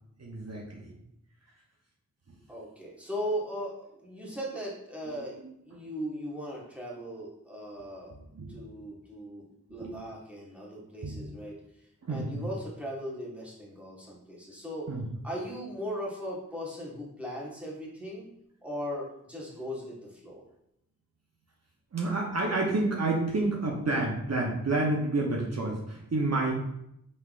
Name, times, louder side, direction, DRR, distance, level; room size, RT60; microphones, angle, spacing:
voice 1, 0.2-0.9 8.3-8.6 9.8-10.0 11.0-11.3 12.0-12.5 14.9-15.0 21.9-26.5, right 2 dB, 50° right, -2 dB, 0.8 m, -29 dB
voice 2, 2.5-8.1 8.5-14.9 15.2-18.3 18.6-20.4, equal, 5° right, -5 dB, 1.3 m, -38 dB
5.4 x 3.3 x 2.4 m, 0.78 s
wide cardioid pair, 65°, 33 cm